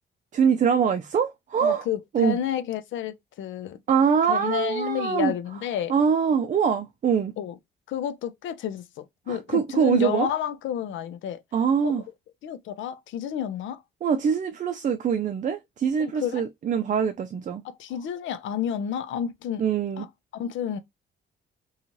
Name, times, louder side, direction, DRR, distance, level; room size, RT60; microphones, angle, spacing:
voice 1, 0.3-1.8 2.1-2.4 3.9-5.3 5.9-7.3 9.3-10.3 11.5-12.0 14.0-17.6 19.6-20.1, right 7 dB, 40° right, 0.4 m, -23 dB
voice 2, 1.6-3.8 4.3-5.9 7.4-7.5 7.9-11.4 11.8-12.0 12.4-13.8 16.0-16.4 17.6-19.6 20.0-20.1 20.3-20.8, left 9 dB, 75° left, 0.6 m, -30 dB
2.9 x 2.3 x 2.6 m
cardioid pair, 90°, 20 cm